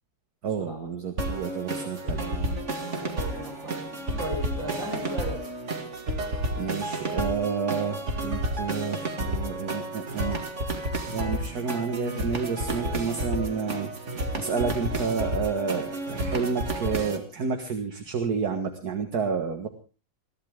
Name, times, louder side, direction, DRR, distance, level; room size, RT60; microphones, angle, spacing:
voice 1, 0.4-2.4 6.6-10.4 11.1-19.7, right 5 dB, 55° right, 5 dB, 2.1 m, -30 dB
sound 1, 1.2-17.2, right 1 dB, 40° right, 2.5 m, -31 dB
voice 2, 1.8-2.2 2.9-5.4, equal, 40° left, 2 dB, 5.5 m, -37 dB
21.5 x 15.0 x 3.6 m, 0.34 s
omnidirectional pair, 2.0 m